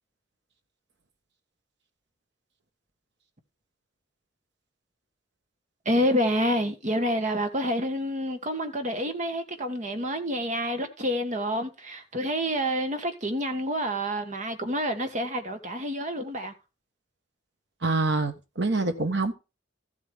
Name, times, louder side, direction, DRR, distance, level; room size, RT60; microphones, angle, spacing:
voice 1, 5.8-16.5, equal, 40° right, 1.7 m, -28 dB
voice 2, 17.8-19.3, right 3 dB, 65° right, 1.5 m, -26 dB
14.0 x 7.8 x 3.6 m
head